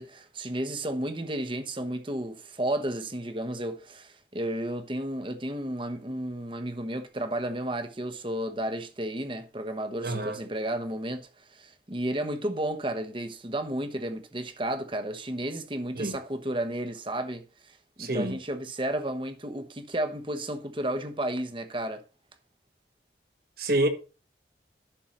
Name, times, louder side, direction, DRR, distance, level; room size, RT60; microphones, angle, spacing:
voice 1, 0.0-22.0, right 1 dB, 30° right, 1.0 m, -32 dB
voice 2, 10.0-10.4 15.9-16.2 18.0-18.4 23.6-23.9, right 1 dB, 55° right, 1.5 m, -27 dB
11.5 x 4.6 x 5.3 m
head